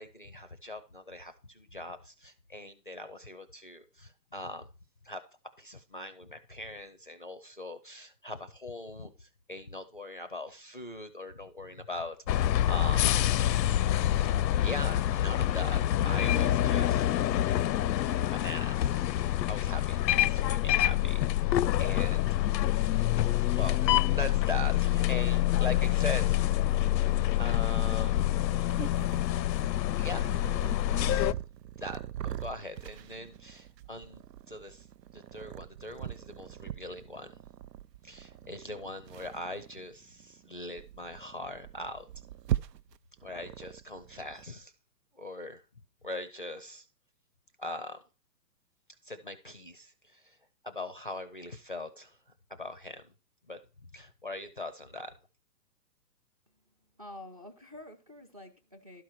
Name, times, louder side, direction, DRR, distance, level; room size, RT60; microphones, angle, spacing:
voice 1, 0.0-4.7 5.0-5.2 5.6-13.0 14.3-17.1 17.9-19.0 19.4-22.8 23.6-23.8 24.2-26.6 27.4-28.4 30.0-30.2 31.0-31.3 31.8-34.9 35.1-37.3 38.0-42.1 43.2-44.7 45.1-45.6 46.0-46.8 47.6-48.0 49.0-50.4 50.6-52.2 52.6-53.0 53.5-53.6 53.9-55.1, left 2 dB, 35° left, 0.5 m, -41 dB
sound 1, 12.3-31.3, left 13 dB, 90° left, 0.6 m, -26 dB
Purr, 25.8-44.5, right 11 dB, 75° right, 0.7 m, -42 dB
voice 2, 57.0-59.0, left 1 dB, 25° right, 0.6 m, -48 dB
12.0 x 4.4 x 6.4 m
hypercardioid pair, 175°, 49 cm